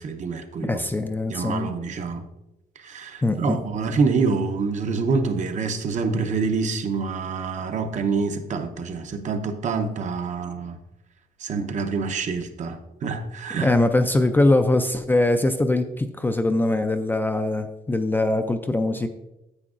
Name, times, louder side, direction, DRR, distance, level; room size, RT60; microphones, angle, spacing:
voice 1, 0.0-0.8 1.3-2.2 2.8-10.8 11.4-13.7, right 4 dB, 50° right, 0.7 m, -26 dB
voice 2, 0.6-1.7 3.2-3.6 13.6-19.1, left 2 dB, 15° left, 0.3 m, -22 dB
9.7 x 8.3 x 2.5 m
wide cardioid pair, 170°, 16 cm